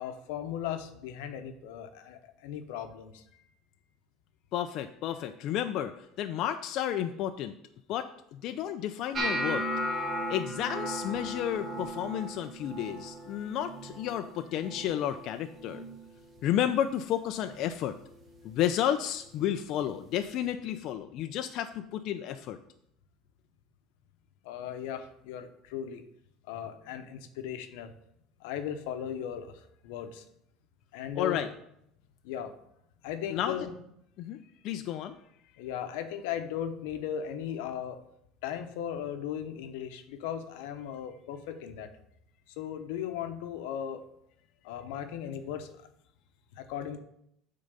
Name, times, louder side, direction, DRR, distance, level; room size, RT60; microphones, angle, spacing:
voice 1, 0.0-3.2 24.4-26.0 26.5-27.9 28.4-30.2 30.9-31.4 32.2-32.5 33.0-33.8 35.6-38.0 38.4-41.9 42.5-44.0 44.6-45.7 46.5-47.0, left 9 dB, 90° left, 8 dB, 0.8 m, -37 dB
voice 2, 4.5-7.5 7.9-9.7 10.3-15.8 16.4-17.9 18.4-22.6 31.2-31.5 33.3-33.5 34.2-34.4 34.6-35.1, left 10 dB, 55° left, 7 dB, 0.4 m, -32 dB
sound 1, 9.1-15.2 15.5-16.0 16.4-16.9 17.6-17.8 19.5-19.6, equal, 25° right, 1.1 m, -36 dB
8.9 x 3.8 x 5.4 m, 0.74 s
cardioid pair, 140°, 0 cm